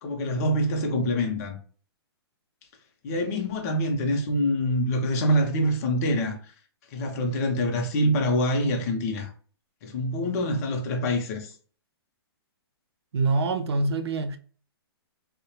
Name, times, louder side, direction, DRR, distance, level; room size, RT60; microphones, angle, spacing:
voice 1, 0.0-1.6 3.0-6.4 6.9-9.3 9.8-11.5, equal, 40° left, 0.6 m, -25 dB
voice 2, 13.1-14.4, right 3 dB, 75° right, 0.4 m, -25 dB
2.8 x 2.1 x 2.3 m
hypercardioid pair, 150°, 14 cm